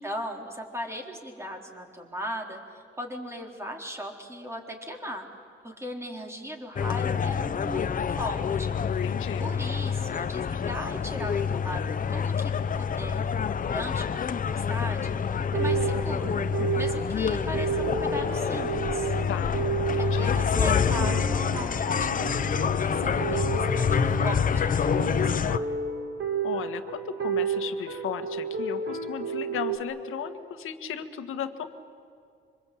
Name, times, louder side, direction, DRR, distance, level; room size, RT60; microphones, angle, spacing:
voice 1, 0.0-5.3 5.6-9.0 9.4-11.8 12.1-13.2 13.6-19.1 20.0-25.8, equal, 10° right, 2 dB, 4.0 m, -38 dB
sound 1, 6.8-25.6, left 7 dB, 40° left, 0.8 m, -27 dB
voice 2, 8.8-9.5 19.3-19.6 19.9-20.3 26.4-31.7, left 9 dB, 80° left, 9 dB, 1.8 m, -36 dB
sound 2, 15.3-29.8, right 5 dB, 65° right, 2.5 m, -32 dB
26.5 x 25.0 x 8.7 m, 2.4 s
cardioid pair, 105°, 21 cm